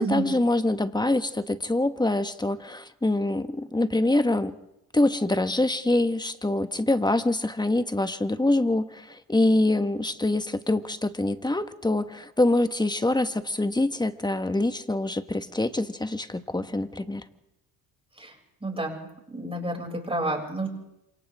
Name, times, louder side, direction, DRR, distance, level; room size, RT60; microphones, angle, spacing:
voice 1, 0.0-4.5 4.9-17.2, left 2 dB, 10° left, 10 dB, 1.6 m, -25 dB
voice 2, 18.6-20.7, right 2 dB, 10° right, 0 dB, 6.9 m, -30 dB
27.5 x 27.0 x 3.7 m, 0.87 s
supercardioid pair, 70°, 47 cm